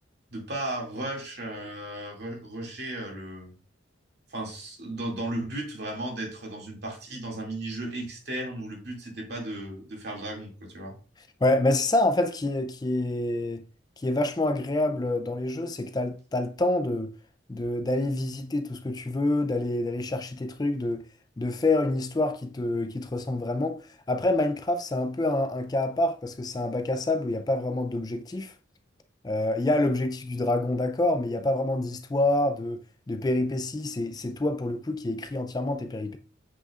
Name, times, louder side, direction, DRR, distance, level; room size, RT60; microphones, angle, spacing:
voice 1, 0.3-3.6 4.3-10.9, right 1 dB, 55° right, 2.3 m, -35 dB
voice 2, 11.4-13.7 14.0-17.2 17.5-21.1 21.4-28.5 29.2-36.2, left 2 dB, 20° left, 0.4 m, -27 dB
7.6 x 6.3 x 2.4 m
head